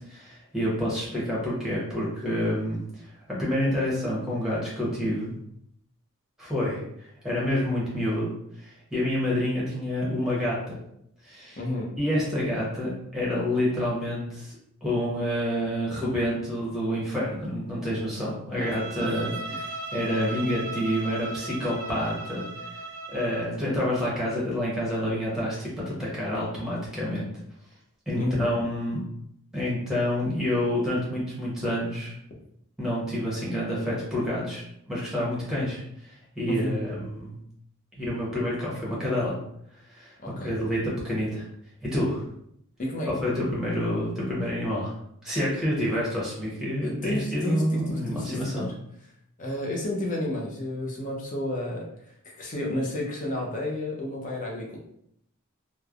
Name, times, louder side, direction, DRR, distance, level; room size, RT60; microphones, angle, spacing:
voice 1, 0.1-5.3 6.4-6.8 7.2-8.3 8.6-10.8 11.2-11.6 12.0-14.5 14.8-22.4 23.1-27.3 28.1-29.0 29.5-32.1 32.8-34.6 34.9-35.8 36.3-37.4 38.0-39.3 39.9-40.1 40.4-41.5 41.8-42.2 43.1-44.9 45.2-48.7, equal, 5° right, -6 dB, 0.8 m, -28 dB
voice 2, 11.6-11.9 18.6-18.7 28.1-28.5 36.5-36.8 40.2-40.5 42.8-43.1 46.8-48.7 49.4-51.9 52.2-54.9, left 1 dB, 40° left, -1 dB, 0.6 m, -31 dB
Bowed string instrument, 18.6-23.5, right 2 dB, 65° right, 0.5 m, -37 dB
3.1 x 2.0 x 2.4 m, 0.74 s
head